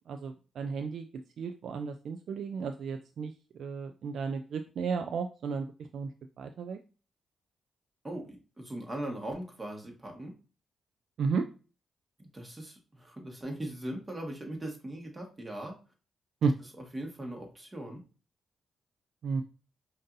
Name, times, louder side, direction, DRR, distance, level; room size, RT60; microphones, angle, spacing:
voice 1, 0.1-1.1 1.4-3.3 3.6-6.1 6.4-6.8 11.2-11.4 16.4-16.5 19.2-19.4, right 5 dB, 70° right, 7 dB, 0.3 m, -33 dB
voice 2, 8.0-10.4 12.2-15.8 16.8-18.0, right 1 dB, 25° right, 1 dB, 1.5 m, -40 dB
5.2 x 2.6 x 2.6 m, 0.34 s
supercardioid pair, 60°, 0 cm